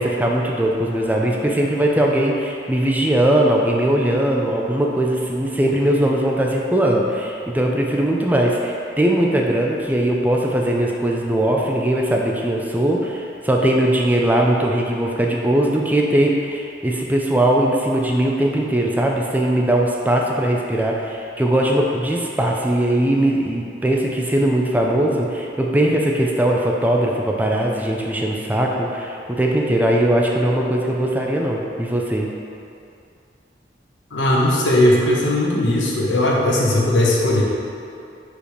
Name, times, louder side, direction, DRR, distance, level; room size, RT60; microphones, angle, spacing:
voice 1, 0.0-32.3, right 1 dB, 10° right, -1 dB, 0.5 m, -20 dB
voice 2, 34.1-37.4, left 1 dB, 85° left, -4 dB, 1.3 m, -18 dB
5.0 x 4.9 x 5.1 m, 2.6 s
head